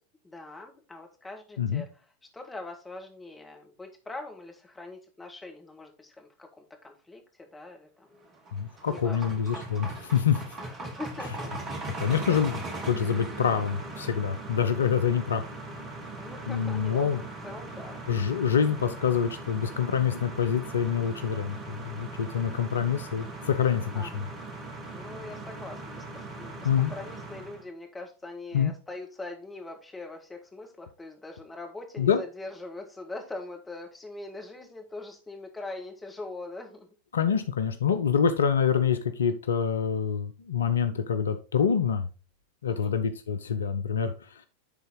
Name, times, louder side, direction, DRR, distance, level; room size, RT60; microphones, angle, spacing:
voice 1, 0.2-1.9 2.3-7.2 7.5-8.3 8.9-9.5 10.6-11.5 16.2-18.0 23.9-24.3 24.9-36.9 42.7-42.9, left 2 dB, 10° left, 2 dB, 1.7 m, -42 dB
sound 1, 8.2-27.6, right 2 dB, 25° right, 1.7 m, -40 dB
voice 2, 8.5-10.4 12.0-15.4 16.5-17.2 18.1-24.3 26.6-26.9 28.5-28.7 32.0-32.2 37.1-42.1 42.6-44.1, left 7 dB, 70° left, 9 dB, 0.6 m, -26 dB
10.5 x 4.0 x 3.8 m, 0.34 s
figure-of-eight pair, 90°, 0 cm